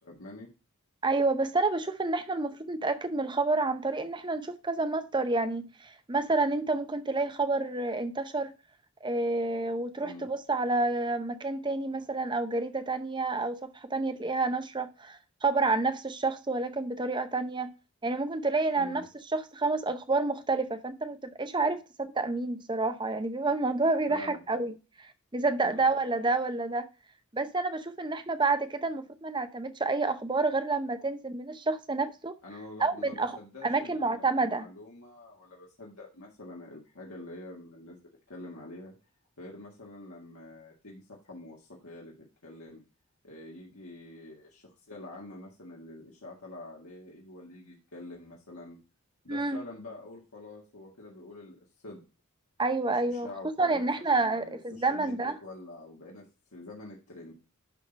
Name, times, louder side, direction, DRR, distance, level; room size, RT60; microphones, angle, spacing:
voice 1, 0.0-0.5 10.0-10.3 18.8-19.0 24.1-24.4 25.6-25.9 32.4-38.0 38.3-38.9 39.4-42.1 42.4-42.8 43.2-48.8 49.2-51.6 51.8-52.0 53.0-53.8 54.1-56.2 56.5-57.3, left 2 dB, 75° left, 1.9 m, -46 dB
voice 2, 1.0-8.5 9.0-17.7 18.0-19.0 19.3-24.7 25.3-26.9 27.3-32.3 32.8-33.3 33.6-34.7 49.3-49.6 52.6-53.3 53.6-55.4, right 3 dB, 20° right, 0.7 m, -29 dB
11.5 x 3.8 x 4.0 m
head